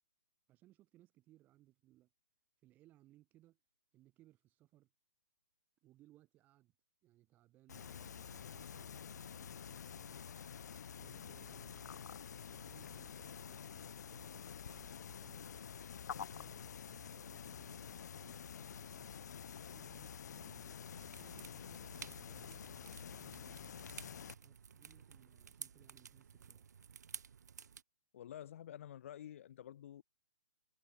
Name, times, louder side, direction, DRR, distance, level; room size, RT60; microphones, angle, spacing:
voice 1, 0.5-2.1 2.6-3.6 3.9-4.9 5.8-6.7 7.0-10.2 11.0-12.1 12.5-15.5 16.2-19.4 19.7-20.8 21.2-23.9 24.4-26.7, right 15 dB, 20° right, 8.0 m, -67 dB
sound 1, 7.7-24.3, left 7 dB, 80° left, 0.5 m, -49 dB
sound 2, 20.9-27.8, right 7 dB, 80° right, 1.4 m, -54 dB
voice 2, 28.1-30.0, left 10 dB, 50° left, 1.1 m, -50 dB
hypercardioid pair, 160°, 9 cm